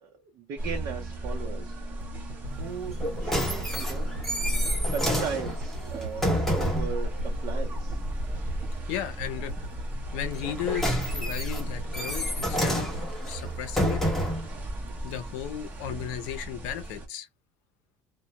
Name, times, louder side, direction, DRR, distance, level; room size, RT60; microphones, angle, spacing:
voice 1, 0.0-1.8 2.5-4.1 4.4-8.0, right 6 dB, 55° right, 0.7 m, -37 dB
sound 1, 0.6-17.1, right 1 dB, 25° right, 0.8 m, -34 dB
sound 2, 2.0-14.3 14.7-14.8, equal, 85° right, 0.8 m, -41 dB
sound 3, 2.9-7.0 10.3-14.5 15.2-15.3, equal, 5° left, 0.8 m, -29 dB
voice 2, 8.9-9.5 10.1-14.0 15.0-17.3, left 10 dB, 85° left, 0.6 m, -35 dB
2.2 x 2.1 x 2.8 m
cardioid pair, 135°, 7 cm